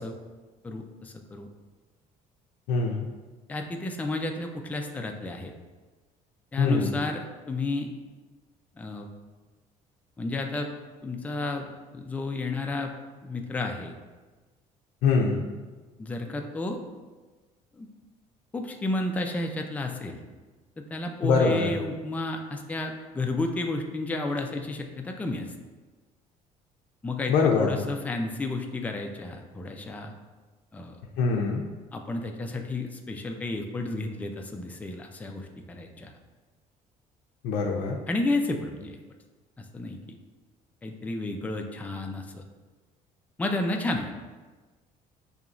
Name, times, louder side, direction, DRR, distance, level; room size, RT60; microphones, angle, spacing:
voice 1, 0.6-1.5 3.5-5.5 6.5-7.9 8.8-9.1 10.2-10.7 11.0-11.7 11.9-12.9 13.2-13.9 16.0-16.8 17.7-17.9 18.5-20.2 20.8-25.5 27.0-30.1 30.7-31.0 31.9-36.1 38.1-39.0 39.6-40.2 40.8-42.4 43.4-44.1, left 2 dB, 10° left, 3 dB, 0.3 m, -32 dB
voice 2, 2.7-3.1 6.6-6.9 15.0-15.4 21.2-21.7 27.3-27.8 31.2-31.6 37.4-38.0, left 4 dB, 80° left, 0 dB, 0.4 m, -23 dB
5.0 x 2.8 x 2.4 m, 1.3 s
cardioid pair, 115°, 15 cm